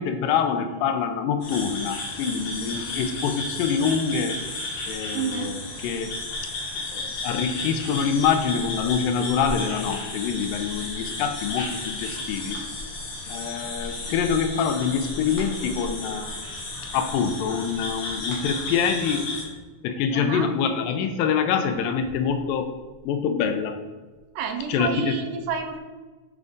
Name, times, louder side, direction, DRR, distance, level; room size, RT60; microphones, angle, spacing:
voice 1, 0.0-4.4 4.9-6.1 6.4-6.5 6.9-12.6 13.3-16.3 16.9-19.3 19.8-22.7 23.0-23.8 24.7-25.2, left 6 dB, 85° left, 7 dB, 2.3 m, -25 dB
sound 1, 1.4-19.4, left 2 dB, 60° left, 2.3 m, -33 dB
voice 2, 5.1-5.5 20.1-20.5 24.4-25.8, right 7 dB, 80° right, 5 dB, 2.2 m, -30 dB
9.1 x 3.6 x 3.9 m, 1.3 s
omnidirectional pair, 4.0 m